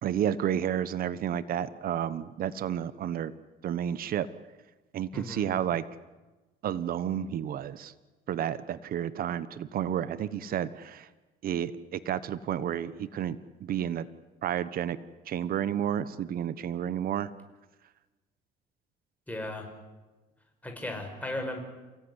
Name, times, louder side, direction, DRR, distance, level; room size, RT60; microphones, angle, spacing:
voice 1, 0.0-3.3 3.6-4.3 4.9-5.8 6.6-7.9 8.3-11.1 11.4-14.1 14.4-15.0 15.3-17.3, right 10 dB, 60° right, 15 dB, 1.1 m, -31 dB
voice 2, 5.1-5.5 19.3-19.7 20.6-21.6, left 1 dB, 10° left, 3 dB, 5.8 m, -36 dB
28.5 x 17.5 x 9.9 m, 1.2 s
cardioid pair, 110°, 17 cm